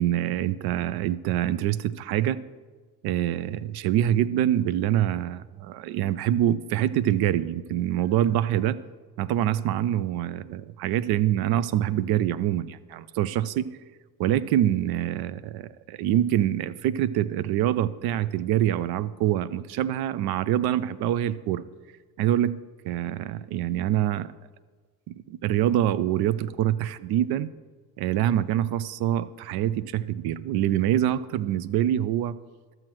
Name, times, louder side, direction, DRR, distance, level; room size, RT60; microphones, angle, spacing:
voice 1, 0.0-2.4 3.0-8.8 9.2-13.7 14.2-21.6 22.2-22.6 22.8-24.3 25.3-27.5 28.0-32.4, right 11 dB, 55° right, 16 dB, 0.5 m, -25 dB
12.5 x 7.7 x 3.1 m, 1.4 s
hypercardioid pair, 75°, 45 cm